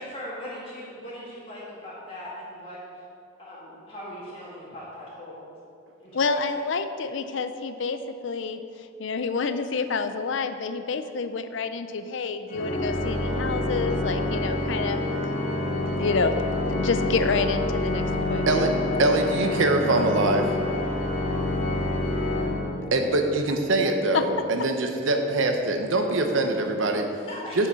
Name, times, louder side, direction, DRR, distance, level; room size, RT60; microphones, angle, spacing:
voice 1, 0.0-2.8 3.4-5.4 6.0-6.4 19.4-19.5 27.3-27.7, equal, 30° left, -8 dB, 1.6 m, -39 dB
voice 2, 6.1-8.6 9.0-15.0 15.8-18.0 18.3-18.6 24.1-24.2, left 4 dB, 70° left, 10 dB, 0.5 m, -28 dB
Organ, 12.5-23.3, left 1 dB, 45° left, 0.8 m, -27 dB
voice 3, 19.0-20.6 22.9-27.1 27.6-27.7, right 2 dB, 75° right, 5 dB, 0.8 m, -23 dB
7.0 x 7.0 x 5.7 m, 2.5 s
head